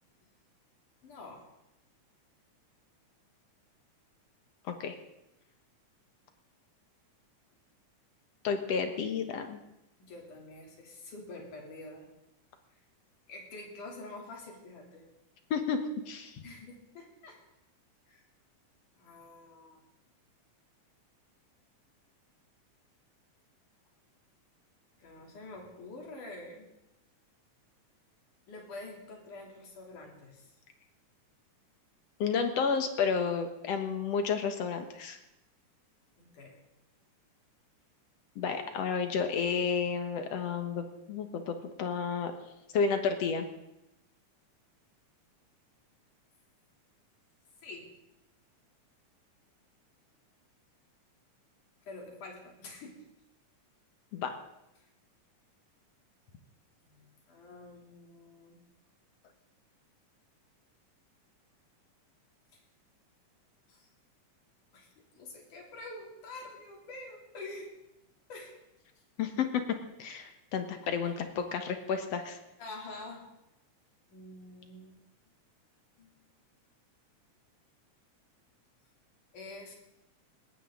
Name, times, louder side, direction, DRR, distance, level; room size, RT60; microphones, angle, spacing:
voice 1, 1.0-1.5 10.0-12.1 12.7-12.8 13.3-15.1 16.4-17.4 18.1-18.2 19.0-19.8 25.0-26.7 28.5-30.6 36.2-36.6 47.6-47.9 51.9-53.0 54.8-54.9 56.9-58.6 62.5-62.6 63.7-63.9 64.7-64.9 65.1-67.7 68.3-68.6 71.1-71.2 72.6-73.2 74.1-75.0 76.0-76.2 79.3-79.7, left 2 dB, 80° left, 0 dB, 4.6 m, -47 dB
voice 2, 8.4-9.6 15.5-16.4 32.2-35.2 38.4-42.3 42.7-43.5 54.1-54.4 69.2-69.6 70.0-72.4, left 6 dB, 60° left, 7 dB, 2.2 m, -31 dB
20.0 x 17.0 x 3.8 m, 0.89 s
omnidirectional pair, 3.6 m